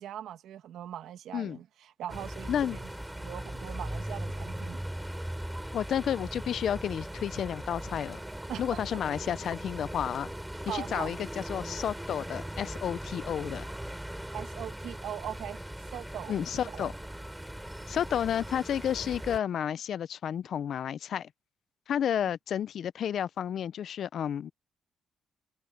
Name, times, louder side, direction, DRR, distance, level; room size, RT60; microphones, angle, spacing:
voice 1, 0.0-4.8 8.5-8.8 10.6-11.1 14.3-16.9, right 11 dB, 75° right, 1.8 m, -41 dB
sound 1, 2.1-19.4, right 1 dB, 5° right, 5.9 m, -39 dB
voice 2, 2.5-2.8 5.7-8.2 8.6-10.3 10.7-13.7 16.3-16.9 17.9-21.3 21.9-24.5, left 9 dB, 65° left, 0.5 m, -31 dB
cardioid pair, 90°, 0 cm